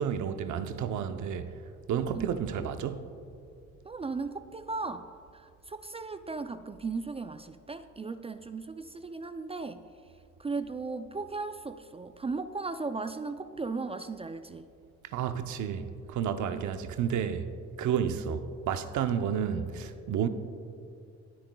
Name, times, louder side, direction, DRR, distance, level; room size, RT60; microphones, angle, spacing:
voice 1, 0.0-1.5 1.9-3.1 15.0-17.5 17.8-20.3, right 8 dB, 75° right, 0.7 m, -31 dB
voice 2, 2.1-2.5 3.8-5.1 5.3-9.8 10.4-14.7 16.5-16.8, right 4 dB, 20° right, 0.3 m, -37 dB
19.5 x 8.9 x 2.3 m
cardioid pair, 90°, 30 cm